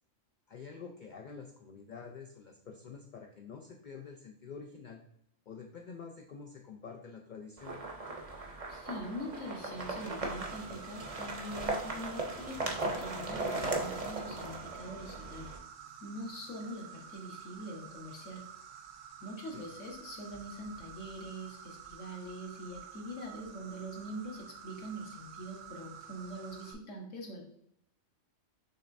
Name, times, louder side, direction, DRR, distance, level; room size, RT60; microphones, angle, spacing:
voice 1, 0.5-5.0 5.5-7.8 19.5-19.7, left 5 dB, 90° left, 2 dB, 0.4 m, -47 dB
sound 1, 7.6-15.6, right 2 dB, 40° right, 0.5 m, -38 dB
voice 2, 8.7-15.5 16.0-18.4 19.2-27.4, equal, 65° left, -1 dB, 1.4 m, -43 dB
Insect, 10.2-26.7, right 8 dB, 70° right, 0.9 m, -50 dB
6.3 x 3.2 x 2.6 m, 0.72 s
omnidirectional pair, 1.4 m